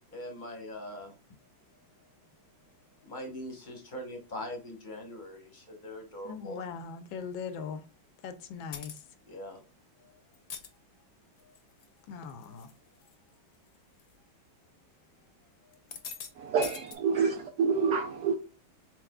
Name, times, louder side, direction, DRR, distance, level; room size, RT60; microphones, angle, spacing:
voice 1, 0.1-1.1 3.0-6.6 9.3-9.6, left 1 dB, 30° left, 0.9 m, -42 dB
voice 2, 6.2-7.8 8.2-8.9 12.1-12.7, left 6 dB, 80° left, 1.4 m, -40 dB
sound 1, 8.7-9.1 10.3-10.7 11.4-11.9 12.3-12.7 13.0-13.1 14.0-14.1 15.7-16.3 16.6-16.9, left 7 dB, 60° left, 1.1 m, -42 dB
voice 3, 16.4-18.4, right 5 dB, 75° right, 0.9 m, -28 dB
4.7 x 4.2 x 2.2 m
omnidirectional pair, 2.2 m